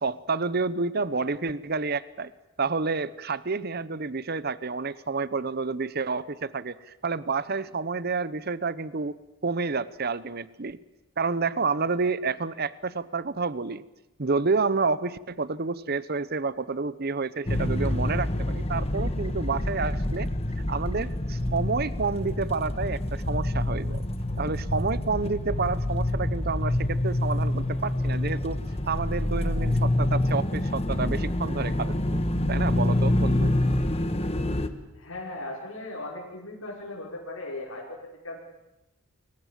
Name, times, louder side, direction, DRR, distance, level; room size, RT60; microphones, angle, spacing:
voice 1, 0.0-2.3 2.6-10.8 11.2-13.8 14.2-20.3 20.7-24.0 24.4-28.6 28.9-32.2 32.5-33.5, right 4 dB, 50° right, 16 dB, 0.9 m, -29 dB
sound 1, 17.5-34.7, left 1 dB, 30° left, 1.5 m, -27 dB
voice 2, 35.0-38.0 38.2-38.5, left 2 dB, 85° left, -4 dB, 5.7 m, -37 dB
28.5 x 23.0 x 7.5 m, 0.94 s
head